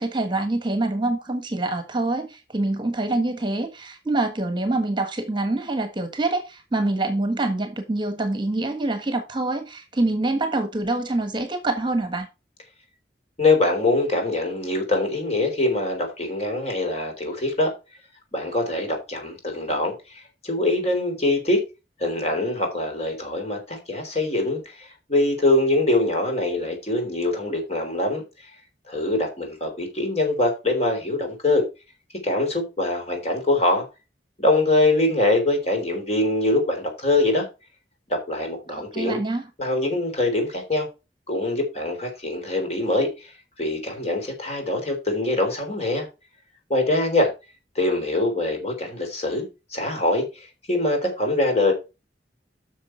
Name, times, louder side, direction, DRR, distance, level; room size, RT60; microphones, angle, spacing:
voice 1, 0.0-12.3 38.7-39.4, right 2 dB, 25° right, 1.4 m, -25 dB
voice 2, 13.4-17.7 18.3-21.7 22.0-28.5 28.9-31.7 32.2-33.8 34.4-37.5 38.1-39.2 39.6-40.9 41.3-46.1 46.7-47.3 47.8-51.7, left 2 dB, 35° left, 3.7 m, -23 dB
9.3 x 6.4 x 4.5 m
head